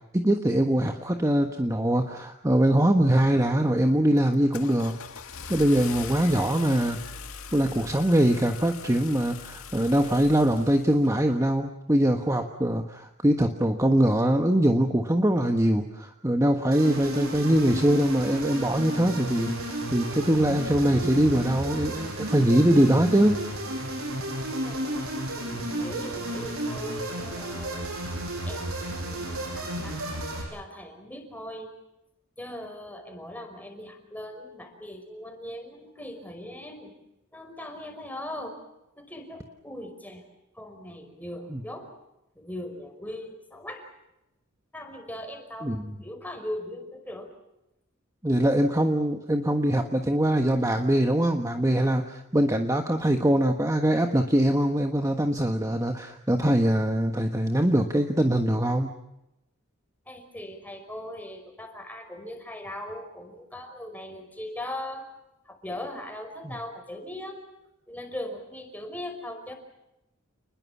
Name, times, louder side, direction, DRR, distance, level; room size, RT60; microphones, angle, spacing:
voice 1, 0.1-4.9 5.5-7.0 7.5-23.4 41.5-41.6 45.6-45.8 48.2-58.9 66.4-66.5, right 1 dB, 15° right, 5 dB, 1.4 m, -23 dB
Car / Engine starting, 3.4-3.7 4.2-11.1, left 6 dB, 90° left, 2.0 m, -41 dB
sound 1, 16.7-30.4, right 1 dB, 85° right, 7.6 m, -32 dB
voice 2, 24.6-27.9 28.5-30.0 30.5-31.7 32.4-36.9 37.3-38.6 39.0-40.2 40.5-41.9 42.4-43.8 44.7-45.7 46.0-47.3 60.0-65.1 65.5-67.4 67.9-69.5, left 1 dB, 10° left, 4 dB, 5.4 m, -39 dB
29.0 x 21.0 x 7.3 m, 0.88 s
head